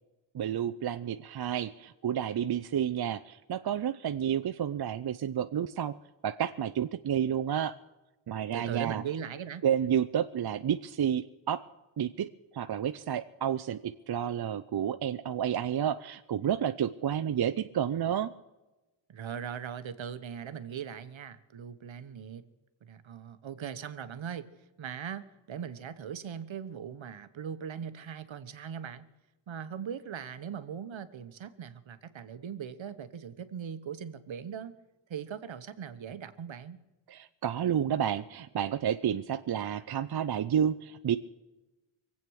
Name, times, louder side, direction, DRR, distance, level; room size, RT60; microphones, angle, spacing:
voice 1, 0.3-6.0 6.2-7.7 8.3-9.0 9.6-11.6 12.0-18.3 37.1-41.2, right 9 dB, 50° right, 10 dB, 0.6 m, -30 dB
voice 2, 8.5-9.6 19.1-22.4 22.8-24.5 24.8-29.1 29.5-34.7 35.1-36.8, right 8 dB, 70° right, 11 dB, 1.2 m, -40 dB
23.5 x 8.5 x 6.3 m, 1.1 s
wide cardioid pair, 90°, 48 cm